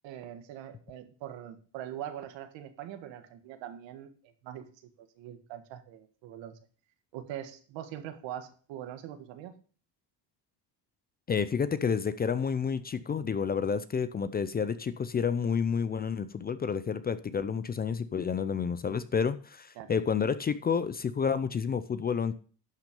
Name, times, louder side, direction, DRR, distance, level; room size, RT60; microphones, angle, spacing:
voice 1, 0.0-4.1 4.4-4.7 5.0-6.6 7.1-9.6 19.7-19.9, right 11 dB, 85° right, 1.6 m, -42 dB
voice 2, 11.3-22.3, left 6 dB, 25° left, 0.4 m, -30 dB
11.5 x 6.0 x 5.2 m
cardioid pair, 140°, 44 cm